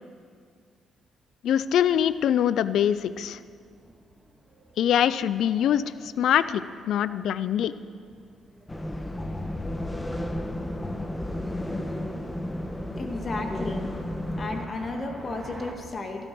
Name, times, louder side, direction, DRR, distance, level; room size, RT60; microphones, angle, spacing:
voice 1, 1.4-3.4 4.8-7.7, left 10 dB, 75° left, 15 dB, 0.4 m, -24 dB
sound 1, 1.5-15.7, right 1 dB, 10° right, 1.9 m, -51 dB
sound 2, 8.7-14.7, left 1 dB, 15° left, 1.0 m, -32 dB
voice 2, 13.0-13.9 14.4-16.3, left 2 dB, 40° left, 3 dB, 1.8 m, -33 dB
13.0 x 12.5 x 6.0 m, 2.1 s
cardioid pair, 90°, 0 cm